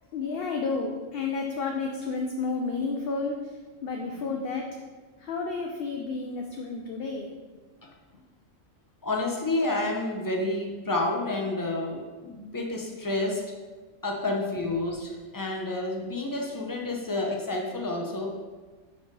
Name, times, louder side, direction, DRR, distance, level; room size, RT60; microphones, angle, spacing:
voice 1, 0.1-4.8 5.2-7.3 8.1-8.2, left 4 dB, 55° left, 1 dB, 0.7 m, -31 dB
voice 2, 9.0-13.4 14.0-18.3, left 2 dB, 20° left, 0 dB, 0.7 m, -29 dB
5.0 x 4.6 x 5.3 m, 1.3 s
omnidirectional pair, 1.3 m